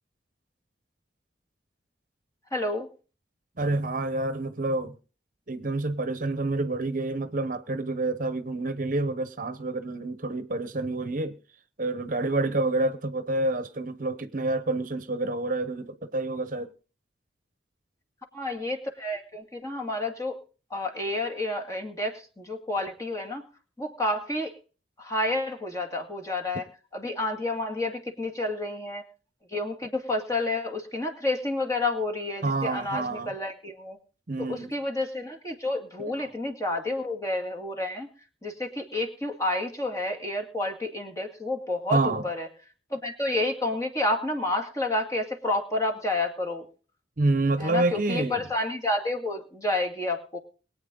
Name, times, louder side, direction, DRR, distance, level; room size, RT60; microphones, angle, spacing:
voice 1, 2.5-2.9 18.3-20.4 20.7-23.4 23.8-24.6 25.0-26.6 26.9-29.0 29.5-34.0 34.4-38.1 38.4-42.5 42.9-46.6 47.6-50.4, left 2 dB, 20° left, 2.2 m, -30 dB
voice 2, 3.6-4.9 5.5-11.4 11.8-16.7 32.4-33.3 34.3-34.7 36.0-36.3 41.9-42.2 47.2-48.5, right 2 dB, 50° right, 0.9 m, -28 dB
22.0 x 8.6 x 3.8 m
head